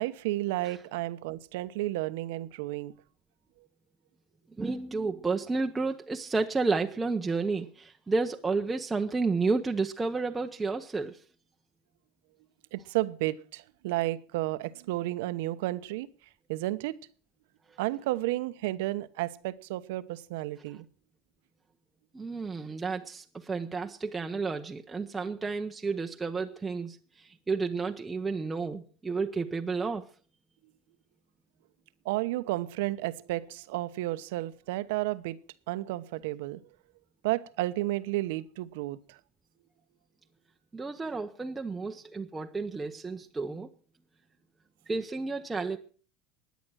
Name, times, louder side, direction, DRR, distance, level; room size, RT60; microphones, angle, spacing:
voice 1, 0.0-2.9 12.7-16.1 16.5-17.0 17.8-20.8 32.0-35.4 35.7-36.6 37.2-39.2, right 17 dB, 80° right, 1.0 m, -32 dB
voice 2, 4.6-11.2 22.1-30.0 40.7-43.7 44.9-45.8, right 4 dB, 10° right, 0.8 m, -31 dB
16.5 x 10.5 x 6.3 m
cardioid pair, 155°, 0 cm